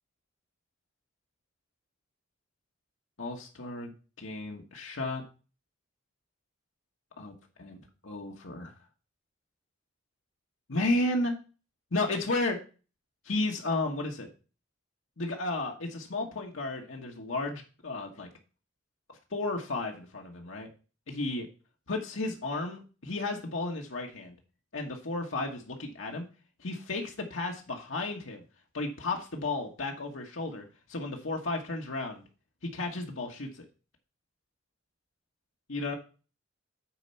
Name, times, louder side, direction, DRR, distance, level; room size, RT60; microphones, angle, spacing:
voice 1, 3.2-3.9 4.2-5.2 7.2-7.3 7.6-7.8 8.1-8.7 10.7-11.4 11.9-12.6 13.2-14.3 15.2-18.3 19.3-20.7 21.1-21.5 21.9-24.3 24.7-26.2 26.6-28.4 28.7-30.6 30.9-32.2 32.6-33.6 35.7-35.9, left 2 dB, 80° left, 1 dB, 1.3 m, -33 dB
9.0 x 4.3 x 5.6 m, 0.34 s
head